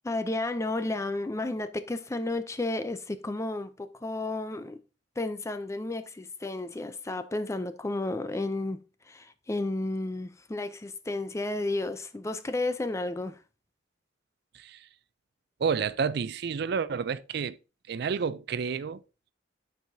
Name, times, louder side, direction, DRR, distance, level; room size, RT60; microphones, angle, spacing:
voice 1, 0.0-4.8 5.2-13.4, left 2 dB, 15° left, 0.4 m, -32 dB
voice 2, 14.5-14.9 15.6-17.6 17.9-19.0, right 6 dB, 60° right, 0.4 m, -30 dB
12.0 x 4.7 x 2.7 m
head